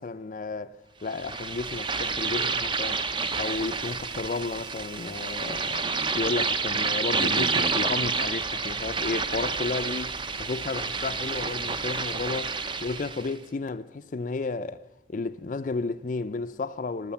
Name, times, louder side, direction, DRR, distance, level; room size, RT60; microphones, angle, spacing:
voice 1, 0.0-3.0 3.4-5.9 6.1-17.1, left 3 dB, 40° left, 0.4 m, -32 dB
sound 1, 1.1-13.3, right 4 dB, 25° right, 0.6 m, -29 dB
13.0 x 12.5 x 7.1 m
head